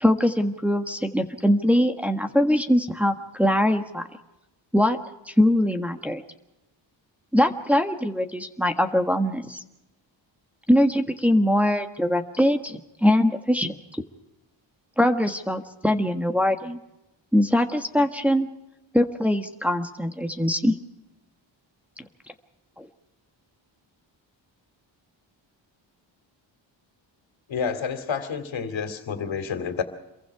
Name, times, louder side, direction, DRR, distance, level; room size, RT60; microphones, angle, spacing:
voice 1, 0.0-4.1 4.7-5.0 5.3-6.2 7.3-9.6 10.7-14.0 15.0-16.8 17.3-18.5 18.9-20.8 22.8-22.9, left 1 dB, 5° right, 4 dB, 1.5 m, -22 dB
voice 2, 27.5-29.8, left 6 dB, 75° left, 8 dB, 2.8 m, -29 dB
28.0 x 23.0 x 4.8 m, 0.94 s
cardioid pair, 105°, 47 cm